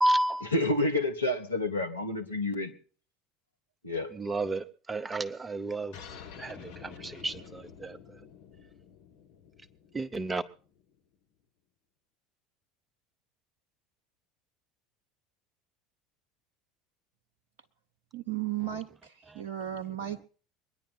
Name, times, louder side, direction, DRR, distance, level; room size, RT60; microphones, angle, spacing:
voice 1, 0.0-0.5 4.1-6.0 6.4-8.2 9.9-10.4 18.7-18.8 19.3-19.4, right 1 dB, 15° right, 0.7 m, -31 dB
voice 2, 0.5-2.7 3.8-4.1, left 2 dB, 85° left, 1.4 m, -29 dB
sound 1, 5.9-11.0, left 7 dB, 60° left, 1.6 m, -49 dB
voice 3, 18.1-20.3, right 12 dB, 60° right, 0.7 m, -35 dB
23.0 x 10.5 x 4.2 m
figure-of-eight pair, 70°, 0 cm